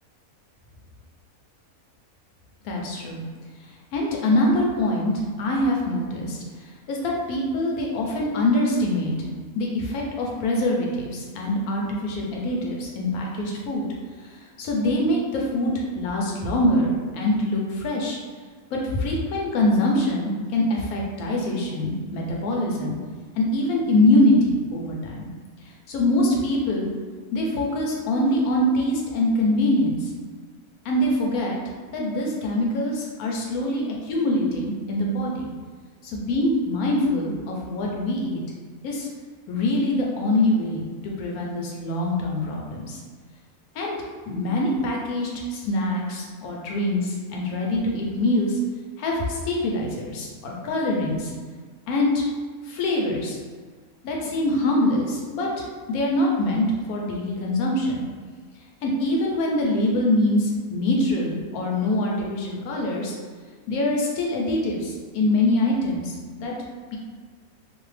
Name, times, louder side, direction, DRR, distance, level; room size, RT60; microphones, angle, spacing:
voice 1, 2.6-3.2 3.9-6.4 6.9-9.1 9.5-13.9 14.2-18.2 18.7-23.0 23.4-25.3 25.9-26.9 27.3-30.1 30.8-31.6 31.9-35.5 36.0-38.4 38.8-39.1 39.5-43.0 43.7-44.0 44.3-48.6 49.0-51.3 51.9-52.2 52.6-53.4 54.0-55.5 55.9-58.0 58.8-63.1 63.7-66.5 66.9-67.0, left 1 dB, 85° left, -1 dB, 1.1 m, -24 dB
2.8 x 2.1 x 3.2 m, 1.6 s
omnidirectional pair, 1.5 m